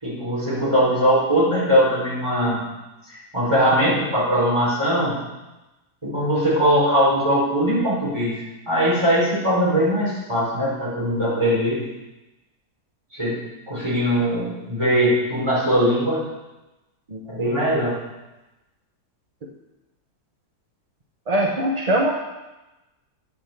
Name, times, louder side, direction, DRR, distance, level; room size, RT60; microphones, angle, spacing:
voice 1, 0.0-2.6 3.1-5.2 6.0-11.8 13.1-13.4 13.7-16.2 17.3-17.9, equal, 15° right, -8 dB, 4.4 m, -21 dB
voice 2, 21.3-22.1, right 1 dB, 35° right, -1 dB, 0.7 m, -21 dB
8.6 x 6.1 x 7.1 m, 1.0 s
omnidirectional pair, 1.7 m